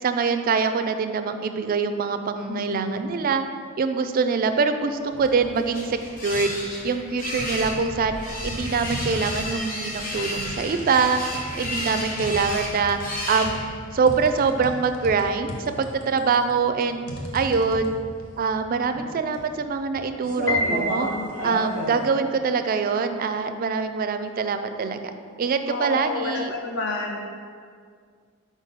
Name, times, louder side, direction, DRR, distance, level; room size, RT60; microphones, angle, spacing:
voice 1, 0.0-3.5 3.8-6.5 6.8-8.2 8.4-11.2 11.6-13.0 13.3-13.6 13.9-17.0 17.3-17.9 18.4-21.1 21.4-25.0 25.4-26.5, right 5 dB, 45° right, 8 dB, 0.3 m, -24 dB
voice 2, 2.5-3.1 25.7-27.2, left 3 dB, 60° left, 1 dB, 0.5 m, -30 dB
sound 1, 5.1-5.5 5.9-6.8 7.4-22.1, equal, 90° left, 1.0 m, -35 dB
sound 2, 5.1-14.0, left 1 dB, 40° left, 0.9 m, -33 dB
Piano, 20.5-21.8, left 2 dB, 10° left, 0.7 m, -27 dB
4.9 x 4.0 x 5.2 m, 2.1 s
head